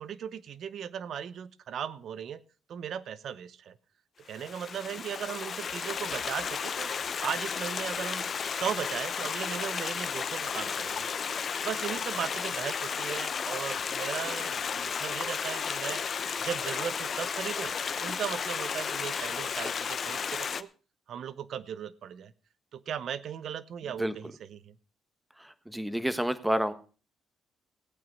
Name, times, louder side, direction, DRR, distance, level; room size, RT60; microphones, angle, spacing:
voice 1, 0.0-2.4 2.7-3.8 4.3-6.9 7.2-11.1 11.6-16.0 16.4-17.7 18.0-20.7 21.1-22.3 22.7-24.8, right 8 dB, 65° right, 17 dB, 0.8 m, -37 dB
Stream, 4.3-20.6, left 6 dB, 50° left, 0.7 m, -33 dB
voice 2, 25.4-26.7, right 1 dB, 5° right, 12 dB, 1.3 m, -29 dB
15.5 x 8.9 x 5.3 m, 0.37 s
cardioid pair, 90°, 0 cm